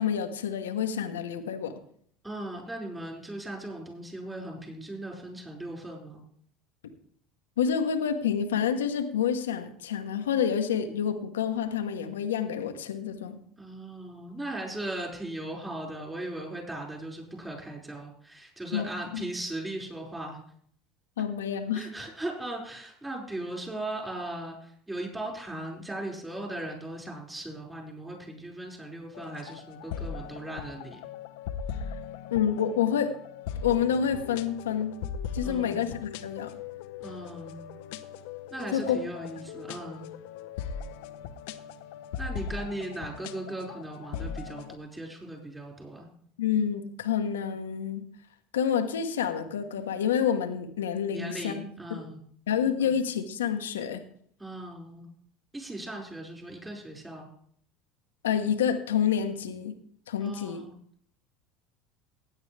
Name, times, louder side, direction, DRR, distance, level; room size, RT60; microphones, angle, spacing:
voice 1, 0.0-1.7 7.6-13.4 18.7-19.3 21.2-21.9 32.3-33.1 33.6-35.0 35.3-36.5 38.7-39.0 46.4-48.0 48.5-51.5 51.9-52.0 52.5-54.0 58.2-59.7 60.1-60.6, left 8 dB, 90° left, 7 dB, 1.2 m, -28 dB
voice 2, 2.2-6.2 13.6-20.4 21.7-31.0 35.4-35.8 37.0-37.7 38.5-40.1 42.2-46.1 51.1-52.2 52.8-52.9 54.4-55.1 55.5-57.3 60.2-60.7, right 1 dB, 10° right, -1 dB, 5.3 m, -38 dB
sound 1, 29.1-44.8, left 7 dB, 75° left, 0.8 m, -39 dB
16.5 x 9.6 x 3.4 m, 0.62 s
hypercardioid pair, 85°, 0 cm